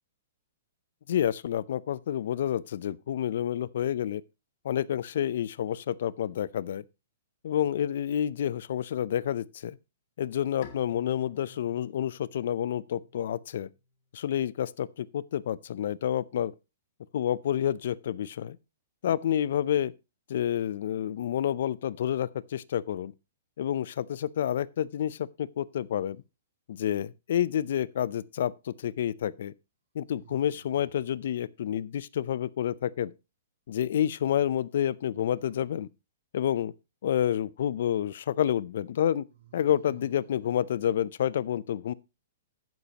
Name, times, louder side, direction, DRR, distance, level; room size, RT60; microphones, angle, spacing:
voice 1, 1.1-4.2 4.6-6.8 7.4-9.8 10.2-13.7 14.1-16.5 17.1-18.6 19.0-19.9 20.3-23.1 23.6-26.2 26.7-29.5 29.9-33.1 33.7-35.9 36.3-36.7 37.0-39.2 39.5-41.9, left 10 dB, 65° left, 0.6 m, -29 dB
Bowed string instrument, 10.6-13.8, left 6 dB, 45° left, 1.8 m, -52 dB
sound 1, 27.5-28.1 30.1-31.1 34.9-35.9 39.3-40.5, right 8 dB, 60° right, 2.9 m, -56 dB
12.0 x 9.5 x 2.9 m
hypercardioid pair, 150°, 0 cm